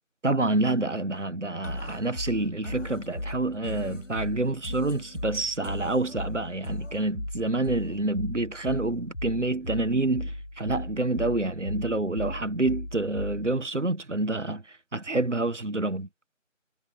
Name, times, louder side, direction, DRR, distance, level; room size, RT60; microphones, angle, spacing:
voice 1, 0.2-16.1, right 2 dB, 60° right, 1.6 m, -28 dB
sound 1, 1.6-13.6, left 1 dB, 65° left, 3.3 m, -37 dB
figure-of-eight pair, 175°, 40 cm